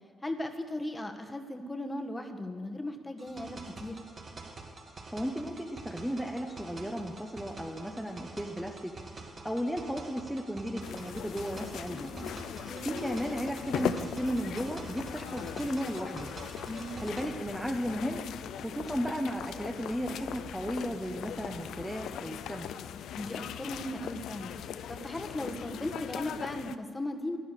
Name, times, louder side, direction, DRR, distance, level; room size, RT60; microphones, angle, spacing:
voice 1, 0.2-4.0 11.8-12.9 16.7-17.0 23.2-24.5 24.9-27.4, left 1 dB, 15° left, 5 dB, 1.3 m, -37 dB
sound 1, 3.2-17.2, right 3 dB, 40° right, 1.8 m, -47 dB
voice 2, 5.1-8.9 9.4-12.1 12.8-16.3 17.0-18.2 18.5-22.7, equal, 5° right, 2 dB, 1.0 m, -34 dB
sound 2, 10.8-26.8, left 9 dB, 75° left, 0.5 m, -39 dB
12.5 x 11.0 x 6.7 m, 2.1 s
cardioid pair, 90°, 0 cm